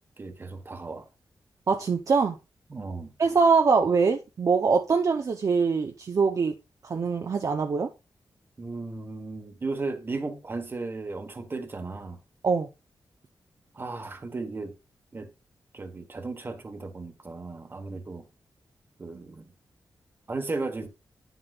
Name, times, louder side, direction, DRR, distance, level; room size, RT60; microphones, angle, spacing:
voice 1, 0.2-1.0 2.7-3.1 8.6-12.2 13.7-14.8 15.1-15.3 15.7-18.2 19.0-19.5 20.3-20.9, right 3 dB, 30° right, 1.3 m, -35 dB
voice 2, 1.7-2.4 3.2-6.6 6.8-7.9 12.4-12.7, right 5 dB, 45° right, 0.7 m, -23 dB
9.6 x 7.8 x 2.4 m
wide cardioid pair, 155°, 8 cm